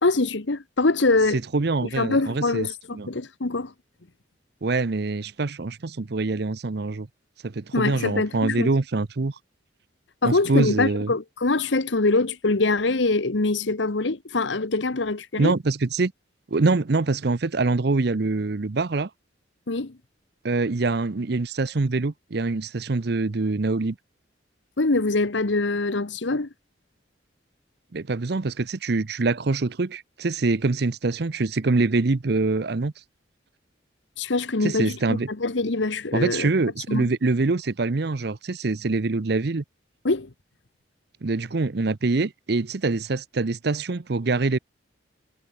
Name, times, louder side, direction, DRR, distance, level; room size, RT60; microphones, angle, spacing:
voice 1, 0.0-1.4 1.8-3.7 7.7-8.7 10.2-15.5 19.7-20.0 24.8-26.5 34.2-36.5 36.9-37.0 40.0-40.3, left 3 dB, 75° left, 1.2 m, -24 dB
voice 2, 1.5-2.7 2.9-3.1 4.6-7.1 7.4-9.3 10.2-11.1 15.4-16.1 16.5-19.1 20.4-24.0 27.9-32.9 34.6-35.3 36.1-39.6 41.2-44.6, right 3 dB, 60° right, 0.7 m, -24 dB
head